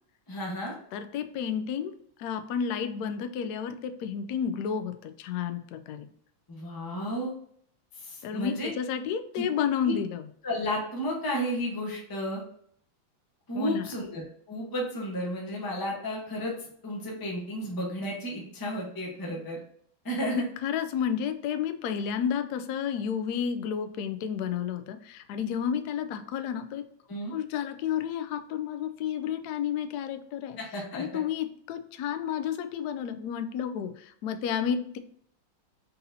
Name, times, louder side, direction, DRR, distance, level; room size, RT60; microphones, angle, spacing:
voice 1, 0.3-0.8 6.5-7.3 7.9-8.7 9.3-9.5 9.8-9.9 10.4-12.4 13.5-16.5 16.8-19.6 20.0-20.5 27.1-27.3 30.6-31.0, equal, 15° left, -2 dB, 0.8 m, -32 dB
voice 2, 0.9-1.9 2.2-6.1 8.2-10.2 13.5-13.8 20.3-26.8 27.3-30.6 30.9-35.0, left 8 dB, 80° left, 8 dB, 0.9 m, -31 dB
4.0 x 4.0 x 2.7 m, 0.64 s
omnidirectional pair, 2.2 m